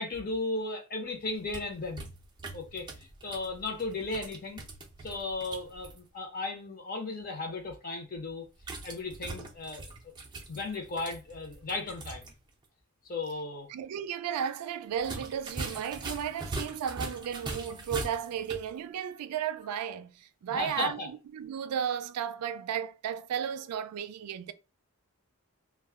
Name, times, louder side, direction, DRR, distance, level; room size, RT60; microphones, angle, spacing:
voice 1, 0.0-2.1 2.5-4.6 5.0-8.5 8.8-9.8 10.5-12.3 13.1-13.7 20.5-21.1, left 3 dB, 40° left, 0.7 m, -35 dB
sound 1, 1.3-6.0 8.6-12.3 12.6-12.7 14.9-18.7, right 2 dB, 20° right, 0.4 m, -41 dB
voice 2, 13.7-24.5, right 8 dB, 90° right, 0.3 m, -34 dB
2.2 x 2.0 x 3.4 m
head